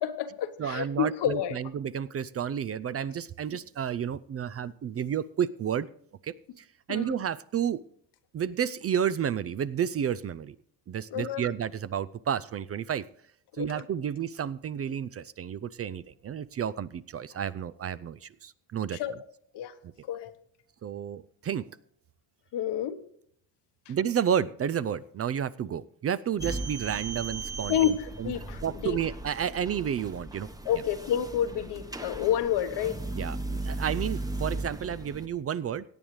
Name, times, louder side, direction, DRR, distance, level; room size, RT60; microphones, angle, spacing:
voice 1, 0.0-1.6 6.9-7.2 11.1-11.4 13.6-13.8 18.9-19.1 19.5-19.7 20.1-20.3 22.5-23.0 27.7-29.0 30.6-33.0, left 10 dB, 75° left, 9 dB, 1.2 m, -29 dB
voice 2, 0.6-5.9 6.2-7.8 8.3-10.6 10.9-13.0 13.6-19.0 20.8-21.7 23.9-28.3 28.6-30.5 33.1-35.8, right 8 dB, 35° right, 16 dB, 0.4 m, -31 dB
sound 1, 26.4-35.3, right 2 dB, 10° right, 1.0 m, -37 dB
17.5 x 8.7 x 3.2 m, 0.64 s
cardioid pair, 90°, 42 cm